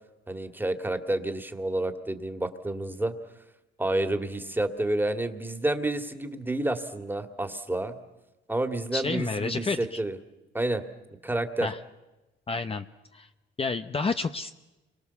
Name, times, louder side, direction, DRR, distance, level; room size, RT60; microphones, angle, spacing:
voice 1, 0.3-3.1 3.8-8.0 8.5-10.2 10.5-10.8 11.2-11.7, right 1 dB, 10° right, 8 dB, 2.2 m, -29 dB
voice 2, 8.9-10.0 11.6-11.8 12.5-12.8 13.1-13.3 13.6-14.5, left 4 dB, 30° left, 8 dB, 0.9 m, -30 dB
29.0 x 23.5 x 7.1 m, 1.1 s
cardioid pair, 90°, 20 cm